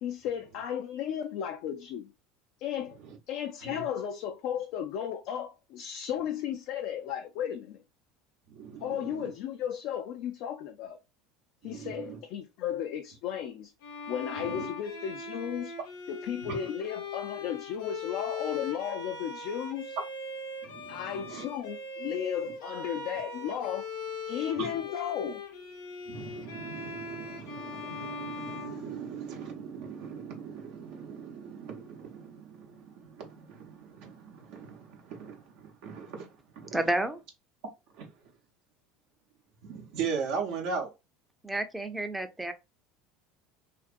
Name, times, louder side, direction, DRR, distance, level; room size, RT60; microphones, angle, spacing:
voice 1, 0.0-2.1 2.6-3.0 3.3-7.8 8.8-11.0 11.6-13.7 14.1-15.8 16.1-20.0 20.9-23.9 24.3-25.4, left 9 dB, 65° left, 0.3 m, -34 dB
voice 2, 8.5-9.3 11.6-12.2 14.4-14.7 16.4-16.7 20.6-21.5 24.6-24.7 26.1-36.8 37.9-38.1 39.6-40.9, right 6 dB, 70° right, 0.7 m, -39 dB
Bowed string instrument, 13.8-29.5, left 3 dB, 85° left, 0.8 m, -40 dB
voice 3, 36.7-37.2 41.4-42.5, right 1 dB, 5° right, 0.5 m, -30 dB
2.5 x 2.5 x 2.4 m
hypercardioid pair, 85°, 0 cm